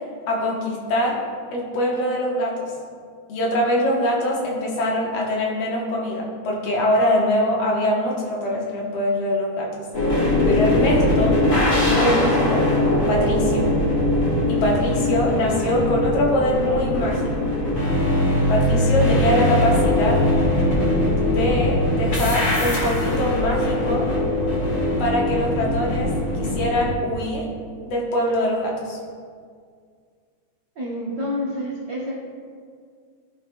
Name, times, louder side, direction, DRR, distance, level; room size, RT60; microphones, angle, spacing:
voice 1, 0.3-1.2 1.5-2.7 3.3-9.7 10.1-10.2 10.5-11.4 11.9-12.6 13.1-13.7 14.5-17.5 18.5-20.2 21.2-24.1 25.0-26.1 26.4-27.5 27.8-29.0, equal, 65° left, -3 dB, 2.0 m, -23 dB
sound 1, 9.9-26.9, left 1 dB, 40° left, 1.8 m, -21 dB
voice 2, 30.8-32.1, left 1 dB, 85° right, -6 dB, 0.9 m, -28 dB
14.0 x 4.7 x 2.2 m, 2.1 s
omnidirectional pair, 3.6 m